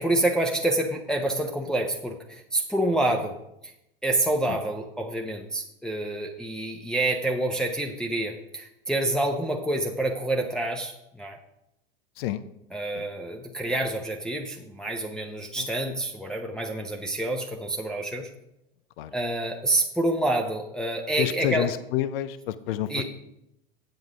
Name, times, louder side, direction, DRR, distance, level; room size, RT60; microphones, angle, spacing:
voice 1, 0.0-3.3 4.0-11.4 12.7-18.3 19.1-21.7 22.9-23.0, right 1 dB, ahead, 0 dB, 0.8 m, -27 dB
voice 2, 12.2-12.5 12.9-13.1 15.6-15.7 19.0-19.1 21.2-23.0, left 12 dB, 70° left, 13 dB, 0.7 m, -29 dB
7.8 x 7.7 x 5.0 m, 0.85 s
hypercardioid pair, 95°, 30 cm